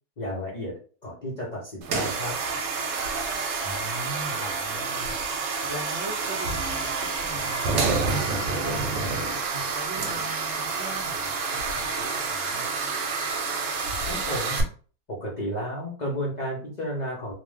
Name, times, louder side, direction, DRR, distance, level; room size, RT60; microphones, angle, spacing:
voice 1, 0.2-0.7 1.0-2.3 14.1-14.5 15.1-17.3, equal, 85° left, -4 dB, 0.4 m, -32 dB
sound 1, 1.8-14.6, right 4 dB, 85° right, 1.3 m, -28 dB
voice 2, 3.6-9.1 9.5-12.7, right 1 dB, 65° right, -1 dB, 0.7 m, -40 dB
2.9 x 2.0 x 3.3 m, 0.40 s
omnidirectional pair, 1.9 m